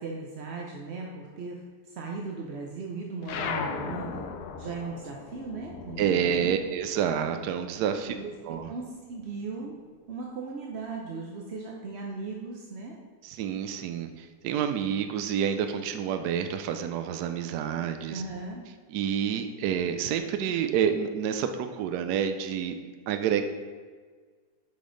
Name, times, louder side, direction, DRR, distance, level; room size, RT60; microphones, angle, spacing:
voice 1, 0.0-4.3 4.6-6.5 8.1-8.3 8.7-9.8 10.1-13.0 18.1-18.6, right 4 dB, 55° right, -1 dB, 0.8 m, -37 dB
sound 1, 3.2-8.1 8.4-9.9, left 6 dB, 75° left, 1.1 m, -38 dB
voice 2, 6.0-8.1 8.4-8.7 13.2-18.2 18.9-22.8 23.1-23.4, right 8 dB, 75° right, 7 dB, 1.1 m, -28 dB
8.4 x 5.3 x 3.9 m, 1.5 s
omnidirectional pair, 1.8 m